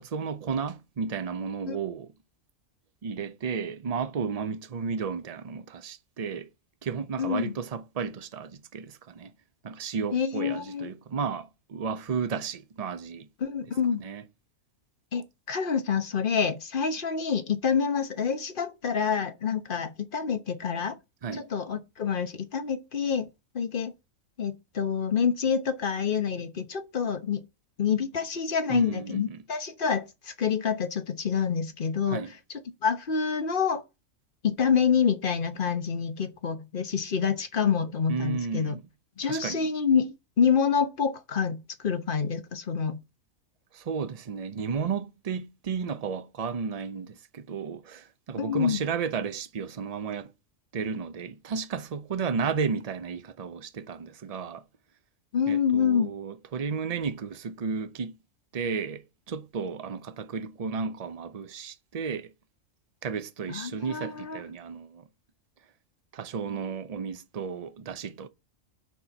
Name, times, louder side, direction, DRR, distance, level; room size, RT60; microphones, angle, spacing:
voice 1, 0.0-2.1 3.0-6.5 6.8-9.3 9.6-13.3 14.0-14.2 21.2-21.5 28.7-29.4 32.1-32.3 38.1-38.8 39.2-39.7 43.7-50.3 50.7-54.6 55.5-58.2 58.5-62.3 63.0-65.1 66.1-68.3, right 6 dB, 40° right, 0.6 m, -33 dB
voice 2, 7.2-7.5 10.1-10.9 13.4-14.0 15.1-21.0 21.5-23.3 23.5-23.9 24.4-27.4 27.8-32.2 32.8-33.8 34.4-38.8 39.2-43.0 48.4-48.8 55.3-56.1 63.5-64.4, left 6 dB, 45° left, 1.1 m, -27 dB
9.2 x 4.4 x 5.4 m
omnidirectional pair, 1.4 m